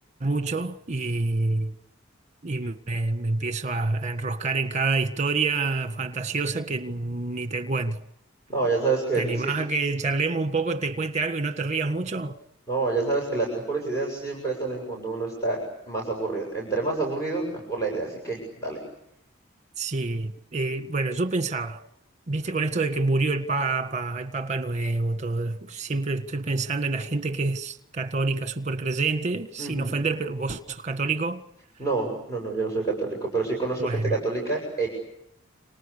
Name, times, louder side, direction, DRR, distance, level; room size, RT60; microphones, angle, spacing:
voice 1, 0.2-1.7 2.4-8.0 9.1-12.4 19.8-21.8 22.3-31.4 33.8-34.2, right 3 dB, 35° right, 1.7 m, -27 dB
voice 2, 8.5-9.5 12.7-15.6 15.9-18.8 29.6-30.0 31.8-34.9, right 3 dB, 15° left, 7.4 m, -28 dB
29.5 x 26.5 x 6.8 m
head